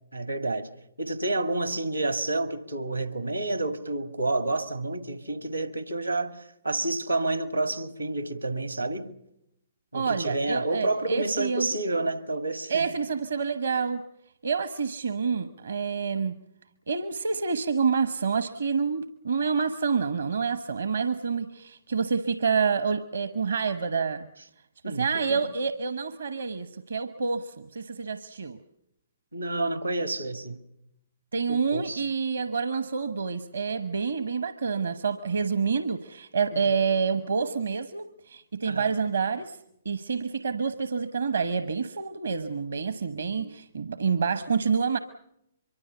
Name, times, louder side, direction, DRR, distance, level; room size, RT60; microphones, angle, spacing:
voice 1, 0.1-0.7 1.0-9.2 9.9-12.9 24.8-25.4 29.3-30.6 31.5-32.0 36.5-36.6 38.6-38.9 43.2-43.5, right 2 dB, 90° right, 1.9 m, -29 dB
voice 2, 9.9-11.7 12.7-14.0 14.4-16.4 16.9-24.3 24.8-28.6 31.3-39.6 39.8-45.0, right 5 dB, 70° right, 1.0 m, -28 dB
24.0 x 23.5 x 6.9 m
figure-of-eight pair, 120°, 0 cm